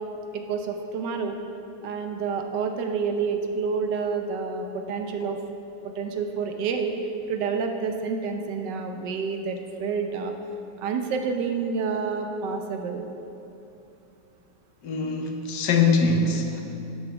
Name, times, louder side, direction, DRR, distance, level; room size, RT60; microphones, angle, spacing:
voice 1, 0.3-1.4 1.8-5.4 5.8-6.9 7.3-10.3 10.8-13.1, right 5 dB, 75° right, 5 dB, 1.3 m, -28 dB
voice 2, 14.8-16.6, left 4 dB, 65° left, 3 dB, 1.3 m, -23 dB
7.9 x 5.5 x 6.0 m, 2.8 s
omnidirectional pair, 2.0 m